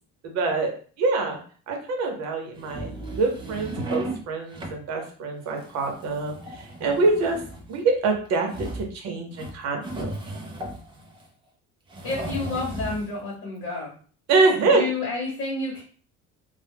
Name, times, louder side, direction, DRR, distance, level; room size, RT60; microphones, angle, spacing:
voice 1, 0.2-1.4 1.7-2.9 3.2-7.4 7.7-8.5 8.7-10.1 14.3-14.9, right 3 dB, 55° right, 2 dB, 0.8 m, -25 dB
sound 1, 2.6-4.2 4.5-4.8 5.4-11.3 11.9-13.1, right 1 dB, 15° right, 0.3 m, -36 dB
voice 2, 12.0-13.9 14.7-15.8, left 3 dB, 45° left, -4 dB, 0.9 m, -30 dB
2.2 x 2.1 x 3.3 m, 0.43 s
cardioid pair, 155°, 31 cm